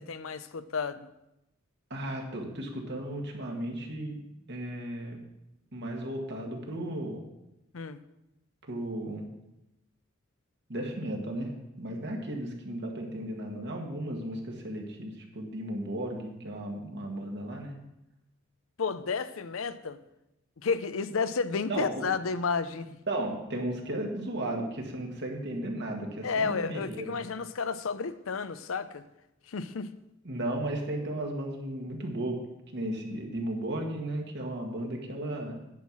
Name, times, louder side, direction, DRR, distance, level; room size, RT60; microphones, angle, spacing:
voice 1, 0.1-1.1 7.7-8.0 18.8-20.0 20.6-23.0 26.2-29.0 29.5-29.9, left 5 dB, 80° left, 12 dB, 0.6 m, -31 dB
voice 2, 1.9-4.2 4.5-5.2 5.7-7.2 8.7-9.3 10.7-11.5 11.8-17.8 21.7-22.1 23.1-27.2 30.3-32.4 32.7-35.6, right 1 dB, 60° right, 1 dB, 1.8 m, -35 dB
10.5 x 5.6 x 6.1 m, 0.90 s
head